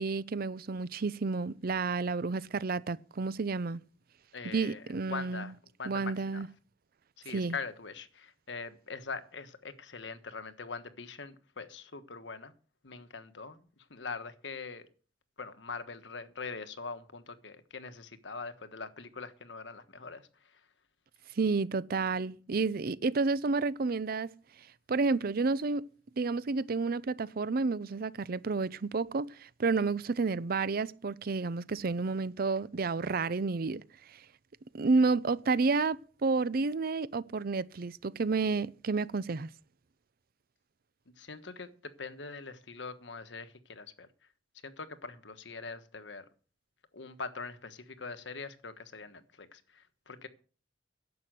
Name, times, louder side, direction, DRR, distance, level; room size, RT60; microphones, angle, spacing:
voice 1, 0.0-3.8 4.4-5.5 5.8-6.5 7.3-7.6 21.4-24.3 24.9-25.9 26.2-33.8 34.7-39.5, right 4 dB, 55° right, 0.5 m, -30 dB
voice 2, 4.3-4.8 5.1-6.4 7.2-12.5 12.8-14.9 15.4-20.5 41.2-44.1 44.6-46.2 46.9-50.3, left 4 dB, 85° left, 1.3 m, -43 dB
11.0 x 7.7 x 7.8 m
head